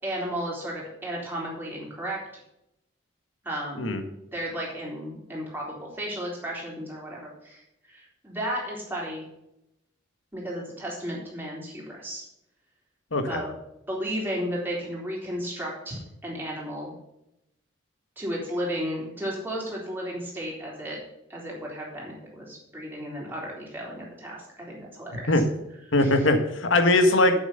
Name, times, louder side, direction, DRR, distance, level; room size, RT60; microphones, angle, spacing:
voice 1, 0.0-2.2 3.4-3.9 4.3-7.6 7.9-9.2 10.3-12.2 13.3-13.5 13.9-16.9 18.2-21.0 21.3-25.3 26.0-26.3, equal, 10° right, -4 dB, 3.6 m, -34 dB
voice 2, 13.1-13.4 25.3-25.4 25.9-27.3, left 2 dB, 85° left, 6 dB, 1.5 m, -21 dB
8.0 x 7.3 x 6.7 m, 0.85 s
head